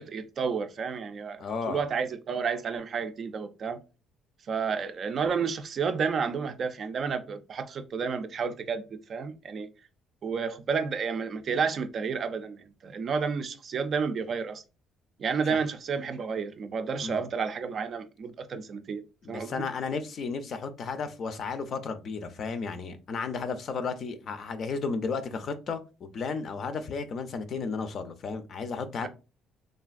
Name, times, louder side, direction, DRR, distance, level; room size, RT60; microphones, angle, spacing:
voice 1, 0.0-3.8 4.5-9.7 10.2-14.6 15.2-19.0 19.3-19.7, right 5 dB, 50° right, 0.4 m, -31 dB
voice 2, 1.4-1.8 15.5-15.6 17.0-17.2 19.2-29.1, left 5 dB, 55° left, 0.5 m, -33 dB
3.3 x 2.4 x 2.3 m
cardioid pair, 95°, 0 cm